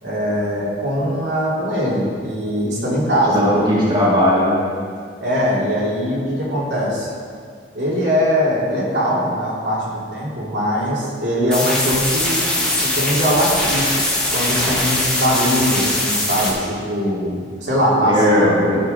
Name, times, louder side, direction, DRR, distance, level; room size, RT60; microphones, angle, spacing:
voice 1, 0.0-3.5 5.2-7.1 7.7-12.4 12.8-13.9 14.3-18.8, equal, 75° right, -6 dB, 2.6 m, -21 dB
voice 2, 3.3-4.6 18.1-18.8, equal, 25° right, -7 dB, 1.8 m, -17 dB
sound 1, 11.5-16.5, left 1 dB, 5° left, 1.4 m, -21 dB
13.0 x 4.9 x 5.2 m, 2.1 s
head